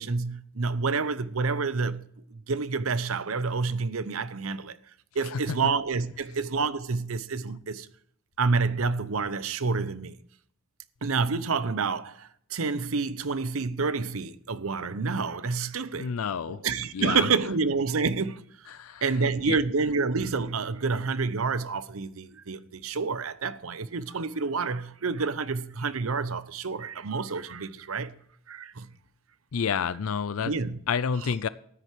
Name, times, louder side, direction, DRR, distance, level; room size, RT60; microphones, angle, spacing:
voice 1, 0.0-4.8 5.1-7.9 8.4-10.2 11.0-16.1 16.5-18.4 19.0-28.1 28.5-28.9 30.4-30.8 31.2-31.4, right 4 dB, 85° right, 0.8 m, -28 dB
voice 2, 16.0-16.6 16.9-17.3 18.7-19.0 19.5-19.6 29.5-30.5 30.9-31.5, left 6 dB, 90° left, 0.5 m, -29 dB
13.5 x 9.9 x 4.6 m
head